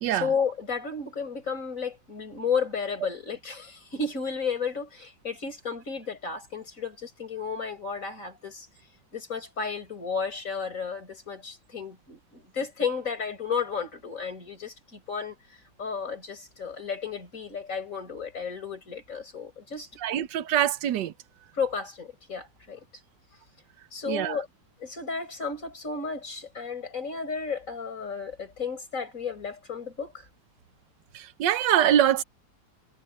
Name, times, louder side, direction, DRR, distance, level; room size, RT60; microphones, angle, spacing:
voice 1, 0.1-8.7 9.1-15.4 15.8-19.9 21.5-22.8 23.9-24.5 24.8-30.3, left 5 dB, 50° left, 5.7 m, -33 dB
voice 2, 20.0-21.1 24.1-24.3 31.1-32.2, right 11 dB, 85° right, 1.5 m, -24 dB
omnidirectional pair, 1.8 m